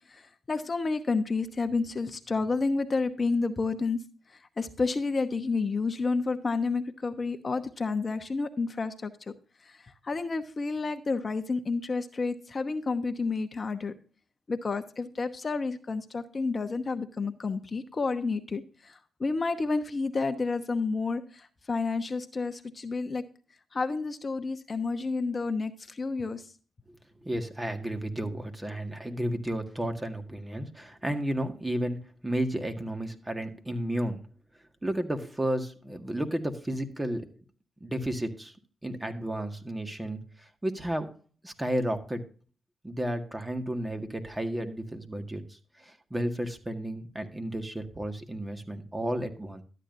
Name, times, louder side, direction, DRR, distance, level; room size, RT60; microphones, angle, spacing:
voice 1, 0.1-4.0 4.3-9.3 9.6-13.9 14.5-23.2 23.7-26.5, left 4 dB, 40° left, 8 dB, 1.0 m, -30 dB
voice 2, 27.2-34.2 34.8-37.3 37.8-38.5 38.8-41.1 41.4-42.3 42.8-49.6, right 1 dB, 15° right, 6 dB, 1.8 m, -32 dB
12.5 x 8.9 x 2.6 m, 0.39 s
supercardioid pair, 60°, 0 cm